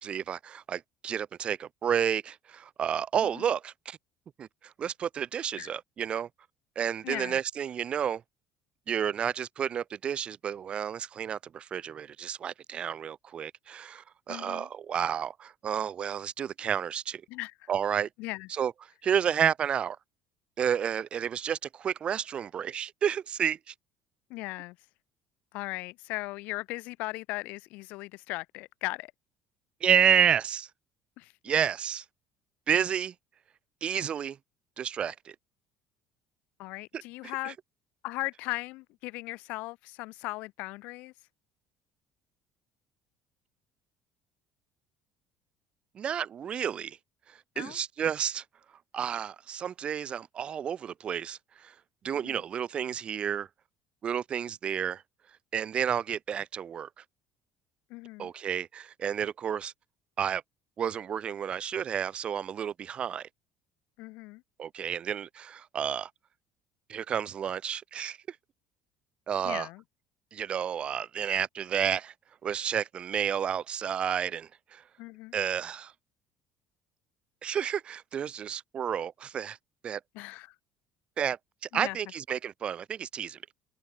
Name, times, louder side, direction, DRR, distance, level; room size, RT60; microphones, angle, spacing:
voice 1, 0.0-4.0 4.4-6.3 6.7-8.2 8.9-17.2 17.7-18.1 18.5-18.7 19.0-20.0 20.6-23.7 29.8-30.7 31.4-32.0 32.7-33.1 33.8-34.4 34.8-35.3 37.4-37.5 45.9-47.0 47.3-48.4 48.9-51.7 52.0-53.5 54.0-55.0 55.5-56.9 58.2-59.7 60.2-60.4 60.8-63.3 64.6-66.1 66.9-68.2 69.3-69.7 70.3-72.1 72.4-74.8 75.3-75.9 77.4-79.6 79.8-80.0 81.2-81.4 81.7-83.4, right 8 dB, 45° right, 1.4 m, -30 dB
voice 2, 7.0-7.4 14.3-14.7 17.3-17.7 18.2-18.5 24.3-24.8 25.5-29.1 31.2-31.3 36.6-37.6 38.0-41.1 47.5-47.8 52.1-52.4 57.9-58.3 64.0-64.4 69.4-69.8 75.0-75.3 80.1-80.5 81.7-82.0, left 22 dB, 75° left, 1.4 m, -38 dB
supercardioid pair, 100°, 3 cm